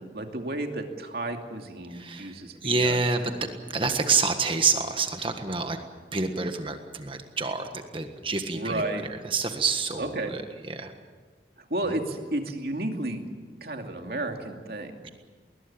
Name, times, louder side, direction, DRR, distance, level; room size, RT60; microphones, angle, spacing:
voice 1, 0.0-3.0 8.5-9.0 10.0-10.3 11.6-13.3 13.6-14.9, right 2 dB, 60° right, 4 dB, 2.7 m, -32 dB
voice 2, 1.9-5.8 6.1-10.9 11.8-12.0 15.0-15.1, right 4 dB, 30° right, 6 dB, 1.6 m, -28 dB
21.0 x 20.5 x 8.7 m, 1.5 s
head